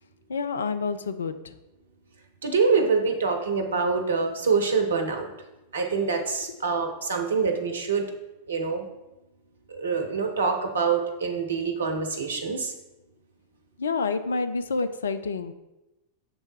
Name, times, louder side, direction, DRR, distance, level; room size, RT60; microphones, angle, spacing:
voice 1, 0.3-1.5 6.5-6.6 13.8-15.5, left 4 dB, 70° left, 10 dB, 0.3 m, -28 dB
voice 2, 2.4-5.3 5.7-8.1 8.5-8.9 9.7-12.7, right 5 dB, 70° right, 5 dB, 0.8 m, -25 dB
6.7 x 3.3 x 4.7 m, 0.98 s
figure-of-eight pair, 90°, 0 cm